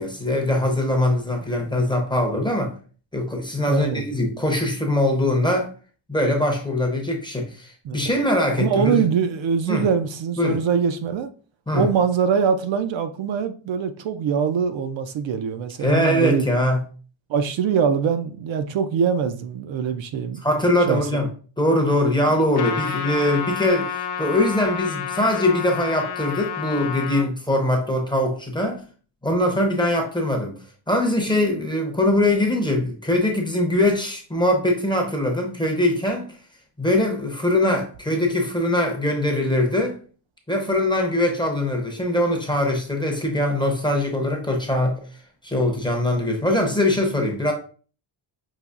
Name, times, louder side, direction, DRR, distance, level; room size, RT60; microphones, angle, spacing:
voice 1, 0.0-2.7 3.1-5.7 6.1-9.0 9.7-9.9 10.4-10.6 11.7-11.9 15.8-16.8 20.4-21.3 21.6-28.8 29.2-30.5 30.9-36.4 36.8-40.0 40.5-45.0 45.4-47.5, left 1 dB, 10° left, 0.6 m, -22 dB
voice 2, 3.7-4.0 7.8-8.0 8.6-11.3 11.7-16.5 17.3-20.4 20.9-21.1 22.3-22.4, right 7 dB, 65° right, 0.5 m, -23 dB
Trumpet, 22.5-27.3, left 6 dB, 50° left, 0.7 m, -29 dB
5.6 x 2.9 x 2.4 m
wide cardioid pair, 170°, 49 cm